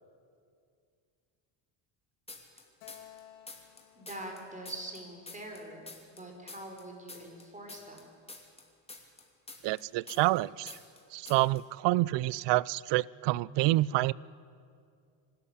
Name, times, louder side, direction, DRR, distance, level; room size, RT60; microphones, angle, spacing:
sound 1, 2.3-3.2 3.5-6.2 6.5-10.4 10.7-11.0 11.3-11.6, left 3 dB, 10° left, 2.8 m, -47 dB
Keyboard (musical), 2.8-6.3, left 11 dB, 85° left, 2.6 m, -57 dB
voice 1, 3.9-8.1, right 1 dB, 15° right, 2 dB, 4.6 m, -44 dB
voice 2, 9.6-10.7 11.1-14.1, right 18 dB, 60° right, 24 dB, 0.5 m, -27 dB
24.5 x 13.0 x 9.9 m, 2.3 s
cardioid pair, 120°, 49 cm